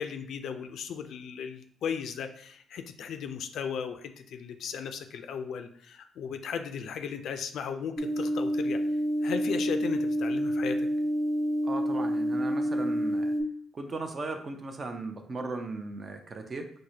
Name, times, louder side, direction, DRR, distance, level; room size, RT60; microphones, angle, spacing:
voice 1, 0.0-8.8 9.2-10.9, left 7 dB, 70° left, 8 dB, 0.3 m, -36 dB
sound 1, 8.0-13.4, equal, 5° left, 0.6 m, -28 dB
voice 2, 11.6-13.3 13.7-16.7, right 3 dB, 35° right, 5 dB, 0.5 m, -37 dB
4.7 x 2.1 x 2.8 m, 0.63 s
cardioid pair, 90°, 0 cm